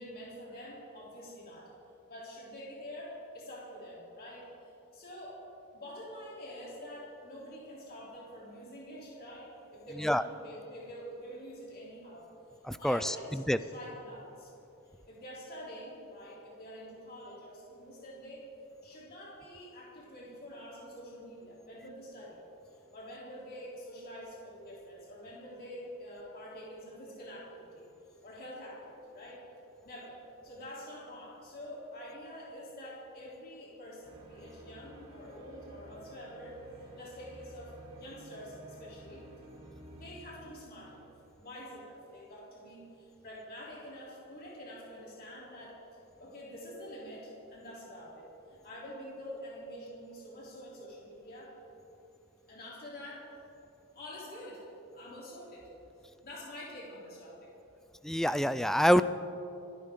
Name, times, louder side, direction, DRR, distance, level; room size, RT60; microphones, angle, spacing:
voice 1, 0.0-1.7 2.1-5.4 5.7-12.3 12.8-14.5 15.1-18.5 18.8-22.4 22.6-29.5 29.8-39.3 39.9-41.1 41.4-45.8 46.2-51.5 52.5-53.3 53.9-54.7 54.9-55.7 56.2-57.5, equal, 45° left, -5 dB, 3.3 m, -46 dB
voice 2, 12.6-13.6 58.0-59.0, equal, ahead, 13 dB, 0.3 m, -26 dB
sound 1, 34.0-41.6, right 1 dB, 25° right, 2.9 m, -53 dB
27.5 x 12.0 x 3.8 m, 2.9 s
head